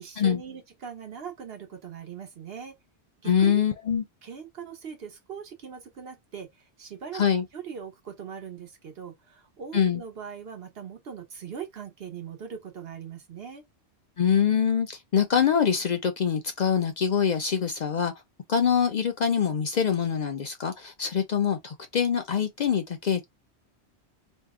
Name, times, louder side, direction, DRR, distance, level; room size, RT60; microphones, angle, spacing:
voice 1, 0.0-2.8 3.2-3.6 4.2-7.2 7.5-13.6, right 7 dB, 65° right, 1.1 m, -40 dB
voice 2, 3.2-4.0 7.1-7.4 9.7-10.0 14.2-18.1 18.5-23.3, left 7 dB, 55° left, 0.5 m, -24 dB
2.7 x 2.0 x 3.5 m
omnidirectional pair, 1.1 m